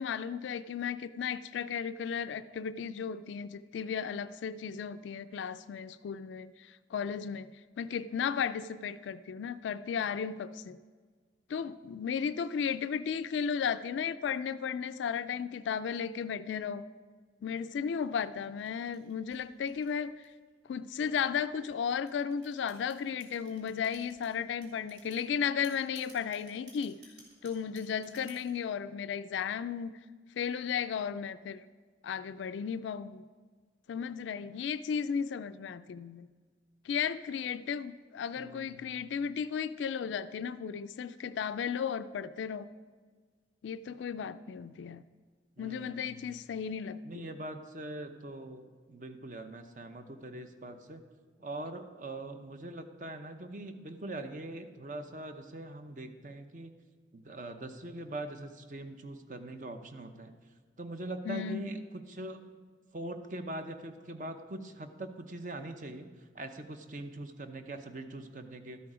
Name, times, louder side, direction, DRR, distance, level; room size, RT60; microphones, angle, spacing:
voice 1, 0.0-7.5 7.8-10.8 11.5-16.8 17.4-20.2 20.7-26.9 27.4-30.0 30.4-31.7 32.0-33.2 33.9-36.3 36.8-42.7 43.6-45.0 45.6-47.3 61.3-61.7, left 7 dB, 85° left, 12 dB, 0.3 m, -35 dB
sound 1, 18.0-20.5 21.2-24.3 24.6-25.2 25.6-28.6, right 2 dB, 70° right, 3.3 m, -57 dB
voice 2, 38.4-38.9 45.6-46.3 47.0-51.0 51.4-56.7 57.1-60.3 60.8-62.4 62.9-68.8, right 2 dB, 45° right, 7 dB, 0.7 m, -42 dB
13.0 x 8.4 x 4.9 m, 1.5 s
head